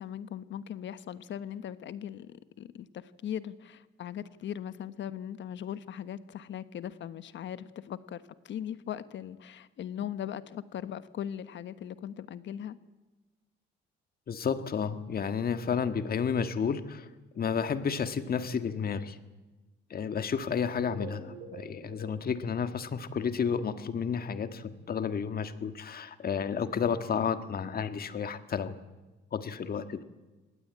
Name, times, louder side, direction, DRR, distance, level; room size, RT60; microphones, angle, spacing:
voice 1, 0.0-12.8, left 10 dB, 70° left, 13 dB, 1.2 m, -39 dB
voice 2, 14.3-17.1 17.4-19.2 19.9-28.8 29.3-30.0, left 6 dB, 50° left, 10 dB, 1.6 m, -31 dB
sound 1, 20.7-23.6, right 4 dB, 70° right, 6.9 m, -47 dB
25.0 x 18.5 x 8.7 m, 1.2 s
cardioid pair, 90°, 20 cm